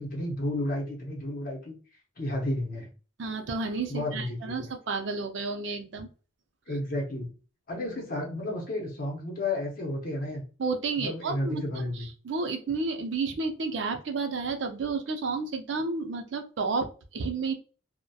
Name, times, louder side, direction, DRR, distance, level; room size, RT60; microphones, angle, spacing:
voice 1, 0.0-1.7 2.2-2.9 3.9-4.7 6.7-7.3 7.7-10.4 11.0-12.1, left 1 dB, 45° left, 0 dB, 0.7 m, -32 dB
voice 2, 3.2-6.1 10.6-17.5, right 4 dB, 60° right, 5 dB, 0.5 m, -31 dB
2.7 x 2.1 x 2.2 m, 0.36 s
head